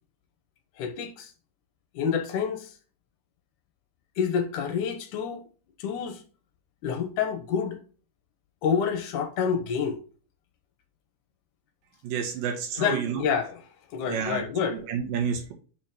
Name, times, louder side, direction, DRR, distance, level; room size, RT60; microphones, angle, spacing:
voice 1, 0.8-1.3 1.9-2.7 4.2-5.4 5.8-6.2 6.8-7.8 8.6-10.0 12.8-13.6 13.9-14.8 15.3-15.4, left 7 dB, 75° left, 2.2 m, -28 dB
voice 2, 12.0-13.3 14.1-14.5 14.7-15.5, right 7 dB, 85° right, 3.0 m, -30 dB
6.4 x 4.4 x 3.9 m
omnidirectional pair, 3.8 m